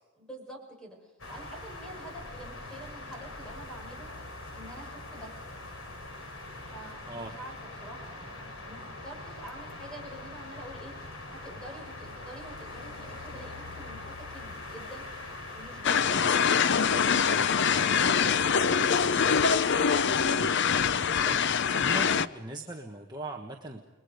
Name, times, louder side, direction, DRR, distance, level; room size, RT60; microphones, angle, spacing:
voice 1, 0.2-4.1 4.5-5.3 6.7-7.5 7.8-19.2, right 1 dB, 5° left, 1 dB, 5.6 m, -47 dB
sound 1, 1.2-20.0, left 2 dB, 75° left, 4.0 m, -42 dB
sound 2, 15.8-22.3, left 6 dB, 60° left, 0.6 m, -24 dB
voice 2, 20.9-23.8, right 2 dB, 20° right, 1 dB, 1.4 m, -41 dB
29.5 x 21.5 x 5.2 m, 1.2 s
head